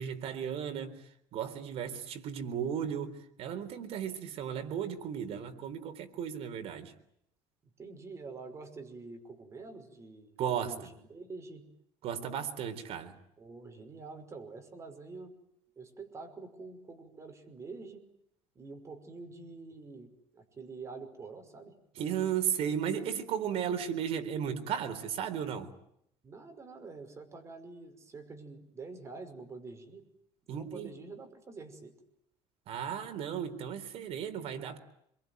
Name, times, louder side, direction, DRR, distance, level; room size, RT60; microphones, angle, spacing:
voice 1, 0.0-6.9 10.4-10.9 12.0-13.2 21.9-25.7 30.5-30.9 32.7-34.8, right 8 dB, 55° right, 3.9 m, -35 dB
voice 2, 7.8-10.3 10.6-11.6 13.4-15.3 15.8-18.0 18.6-21.7 26.2-30.0 30.5-31.9, right 3 dB, 25° right, 5.6 m, -47 dB
27.5 x 23.0 x 9.4 m
cardioid pair, 140°, 12 cm